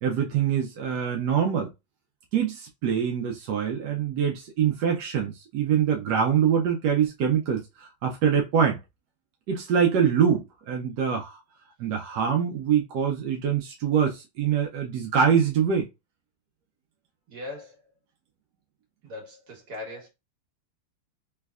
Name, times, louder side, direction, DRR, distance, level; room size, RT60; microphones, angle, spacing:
voice 1, 0.0-1.7 2.3-8.8 9.5-11.4 11.8-15.9, right 7 dB, 70° right, 1.0 m, -24 dB
voice 2, 17.3-17.8 19.0-20.1, left 2 dB, 50° right, 1.7 m, -39 dB
3.4 x 3.2 x 2.3 m
omnidirectional pair, 2.3 m